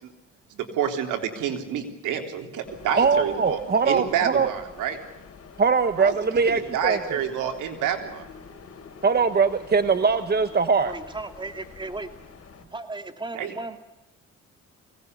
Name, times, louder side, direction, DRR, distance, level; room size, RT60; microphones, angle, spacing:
voice 1, 0.5-3.6 3.9-5.0 5.9-6.1 6.5-8.3 13.3-13.5, right 9 dB, 85° right, 4 dB, 3.7 m, -28 dB
sound 1, 2.6-12.7, left 5 dB, 50° left, 4.3 m, -47 dB
voice 2, 3.0-4.5 5.6-7.2 9.0-10.9, right 5 dB, 30° right, 10 dB, 1.2 m, -21 dB
voice 3, 10.9-12.1 12.7-13.8, right 2 dB, 15° right, 7 dB, 2.5 m, -35 dB
23.5 x 18.5 x 8.2 m, 0.97 s
cardioid pair, 90°, 30 cm